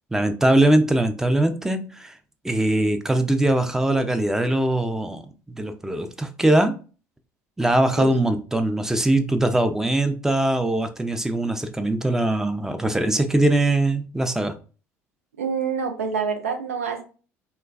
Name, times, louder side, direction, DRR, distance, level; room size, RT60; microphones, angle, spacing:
voice 1, 0.1-2.1 2.4-5.2 5.5-6.8 7.6-14.6, right 1 dB, 5° right, 0.5 m, -21 dB
voice 2, 15.4-17.0, right 6 dB, 85° right, 0.5 m, -26 dB
3.2 x 2.2 x 2.3 m
figure-of-eight pair, 60°, 7 cm